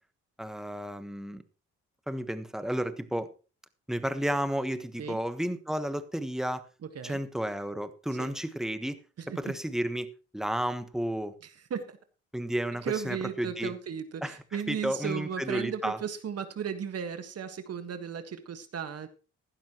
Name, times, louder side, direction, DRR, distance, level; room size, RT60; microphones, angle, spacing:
voice 1, 0.4-1.4 2.1-3.3 3.9-6.6 7.0-9.0 9.4-11.3 12.3-13.7 14.2-16.0, right 1 dB, ahead, 11 dB, 1.2 m, -32 dB
voice 2, 12.8-19.1, right 7 dB, 55° right, 9 dB, 1.6 m, -35 dB
15.5 x 11.5 x 3.0 m, 0.34 s
cardioid pair, 90°, 30 cm